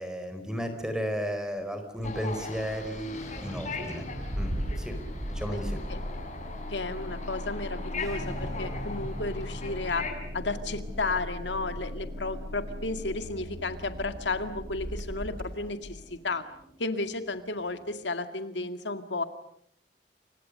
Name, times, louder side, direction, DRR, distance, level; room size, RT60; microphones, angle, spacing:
voice 1, 0.0-4.1 4.4-4.5 4.8-5.0 5.3-5.8, equal, 5° right, 8 dB, 4.7 m, -34 dB
sound 1, 2.0-10.1, left 4 dB, 45° left, 6.1 m, -40 dB
Engine starting, 2.0-16.1, equal, 55° right, 5.8 m, -38 dB
sound 2, 3.1-18.0, equal, 20° right, 7.5 m, -45 dB
voice 2, 6.7-10.1 10.3-16.4 16.8-19.2, left 3 dB, 85° left, 8 dB, 2.1 m, -33 dB
29.5 x 25.5 x 6.7 m, 0.68 s
head